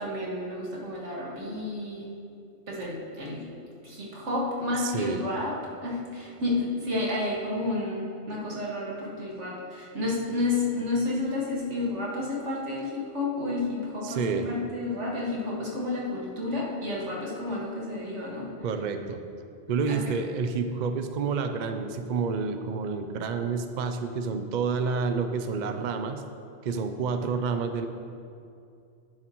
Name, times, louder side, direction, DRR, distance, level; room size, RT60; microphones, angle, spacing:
voice 1, 0.0-2.1 2.7-3.5 3.8-5.6 5.8-18.5 19.9-20.1, left 2 dB, 75° right, -4 dB, 2.1 m, -31 dB
voice 2, 4.8-5.2 14.0-14.5 18.6-19.2 19.7-26.2 26.6-27.9, right 5 dB, 55° right, 7 dB, 0.6 m, -29 dB
10.5 x 10.0 x 3.0 m, 2.5 s
omnidirectional pair, 1.2 m